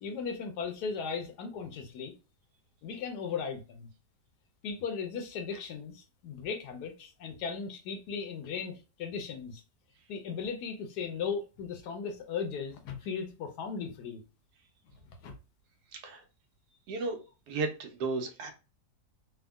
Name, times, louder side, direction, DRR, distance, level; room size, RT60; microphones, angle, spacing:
voice 1, 0.0-2.1 2.8-3.9 4.6-9.6 10.1-14.2 15.2-15.3, left 6 dB, 80° left, 1.1 m, -37 dB
voice 2, 15.9-16.2 16.9-17.2 17.5-18.5, right 3 dB, 75° right, 1.2 m, -34 dB
3.4 x 2.1 x 2.2 m
omnidirectional pair, 1.7 m